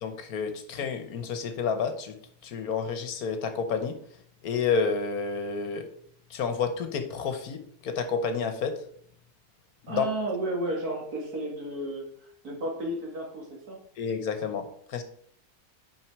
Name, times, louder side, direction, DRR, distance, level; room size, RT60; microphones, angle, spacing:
voice 1, 0.0-2.2 2.4-4.0 4.4-5.9 6.3-8.8 9.9-10.0 14.0-15.0, left 5 dB, 70° left, 7 dB, 1.3 m, -30 dB
voice 2, 9.9-12.0 12.4-13.8, right 1 dB, 75° right, -2 dB, 2.5 m, -32 dB
6.1 x 5.4 x 4.6 m, 0.63 s
omnidirectional pair, 1.6 m